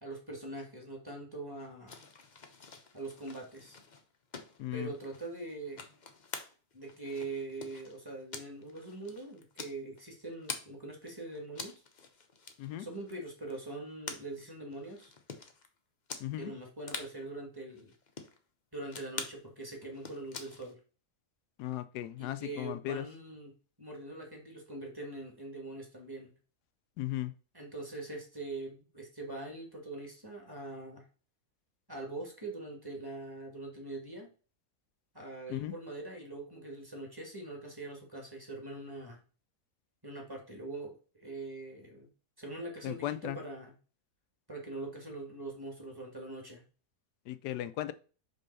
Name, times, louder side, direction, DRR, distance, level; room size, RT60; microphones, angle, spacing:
voice 1, 0.0-2.0 2.9-3.8 4.7-5.8 6.7-11.7 12.8-15.1 16.4-17.9 18.7-20.8 22.2-23.5 23.8-26.3 27.5-31.0 31.9-34.3 35.1-39.2 40.0-40.9 41.2-42.1 42.4-43.7 44.5-46.6, right 2 dB, 15° right, 0 dB, 1.6 m, -43 dB
sound 1, 1.9-10.7 11.0-15.7 16.1-16.3 16.5-16.6 16.8-17.1 17.7-18.4 18.9-19.4 19.8-20.7, left 4 dB, 40° left, 0.7 m, -46 dB
voice 2, 4.6-4.9 12.6-12.9 16.2-16.5 21.6-23.1 27.0-27.3 35.5-35.7 42.8-43.4 47.3-47.9, left 13 dB, 85° left, 12 dB, 1.1 m, -36 dB
5.5 x 3.7 x 5.4 m, 0.36 s
omnidirectional pair, 1.7 m